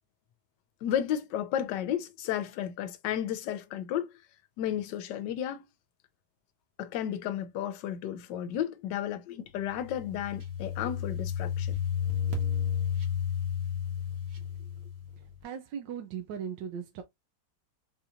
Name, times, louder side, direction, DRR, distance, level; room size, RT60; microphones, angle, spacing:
voice 1, 0.8-4.1 4.6-5.6 6.8-11.7, left 10 dB, 80° left, 1.2 m, -33 dB
sound 1, 9.7-15.3, left 8 dB, 55° right, 1.4 m, -32 dB
voice 2, 15.4-17.0, right 8 dB, 85° right, 1.3 m, -38 dB
4.2 x 2.8 x 2.4 m
omnidirectional pair, 2.0 m